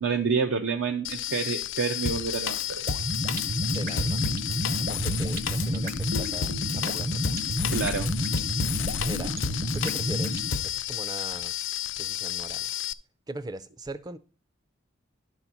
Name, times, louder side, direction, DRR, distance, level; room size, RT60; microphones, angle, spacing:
voice 1, 0.0-2.8 7.7-8.1, right 5 dB, 70° right, 0.6 m, -28 dB
sound 1, 1.0-12.9, left 13 dB, 65° left, 0.3 m, -33 dB
Drum kit, 2.1-10.7, left 4 dB, 85° left, 0.7 m, -33 dB
sound 2, 2.9-10.5, right 1 dB, 50° right, 0.8 m, -30 dB
voice 2, 3.7-4.2 4.8-7.3 9.0-9.4 9.7-11.5 12.0-12.7 13.3-14.2, right 2 dB, 20° right, 0.4 m, -40 dB
11.5 x 4.1 x 5.9 m
head